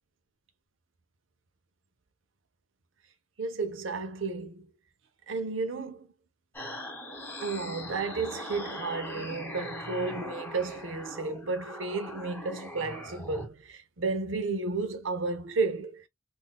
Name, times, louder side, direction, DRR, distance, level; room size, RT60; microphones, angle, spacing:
voice 1, 3.4-4.7 5.3-6.1 7.4-16.1, right 3 dB, 85° right, 0.7 m, -32 dB
sound 1, 6.5-13.5, equal, 10° left, 1.4 m, -40 dB
3.7 x 2.6 x 2.2 m
head